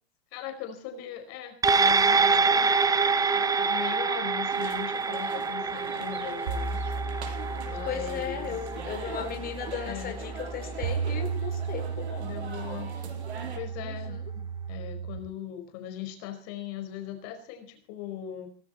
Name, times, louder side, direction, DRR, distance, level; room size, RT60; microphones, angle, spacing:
voice 1, 0.3-2.8 3.1-8.6 9.8-10.2 12.2-12.9 13.5-18.5, left 11 dB, 50° left, 6 dB, 4.7 m, -40 dB
sound 1, 1.6-10.3 10.7-10.8, right 4 dB, 10° right, 1.0 m, -26 dB
sound 2, 4.5-13.6, right 5 dB, 90° right, 6.0 m, -42 dB
sound 3, 6.5-15.2, right 5 dB, 70° right, 7.6 m, -35 dB
voice 2, 7.9-12.3 13.8-14.2, left 8 dB, 30° left, 4 dB, 4.8 m, -36 dB
19.0 x 17.0 x 4.2 m, 0.40 s
hypercardioid pair, 120°, 32 cm